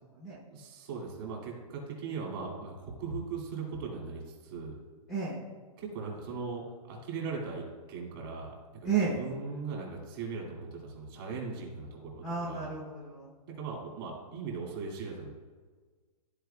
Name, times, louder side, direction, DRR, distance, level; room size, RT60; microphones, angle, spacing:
voice 1, 0.5-4.8 5.8-12.7 13.5-15.3, right 4 dB, 35° right, -2 dB, 2.2 m, -39 dB
voice 2, 5.1-5.4 8.8-9.2 12.2-13.3, right 5 dB, ahead, -6 dB, 0.8 m, -32 dB
13.5 x 4.7 x 2.3 m, 1.5 s
hypercardioid pair, 170°, 20 cm